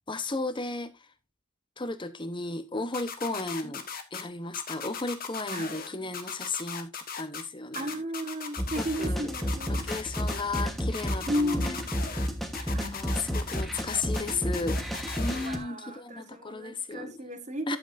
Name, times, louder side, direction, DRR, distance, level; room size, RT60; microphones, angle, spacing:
voice 1, 0.1-0.9 1.8-3.8 4.1-7.9 8.8-9.3 9.7-11.8 12.6-14.8 15.2-17.2 17.7-17.8, left 3 dB, 20° left, 1.0 m, -34 dB
sound 1, 2.9-4.2 4.5-5.9 6.1-7.4 7.7-9.1 9.3-10.6 10.9-12.3 12.5-15.5, left 6 dB, 40° left, 1.4 m, -38 dB
voice 2, 7.7-9.9 11.3-12.0 12.7-13.0 13.9-14.6 15.3-17.8, equal, 35° right, 1.6 m, -35 dB
sound 2, 8.6-15.6, equal, ahead, 1.3 m, -32 dB
12.0 x 7.7 x 2.6 m
head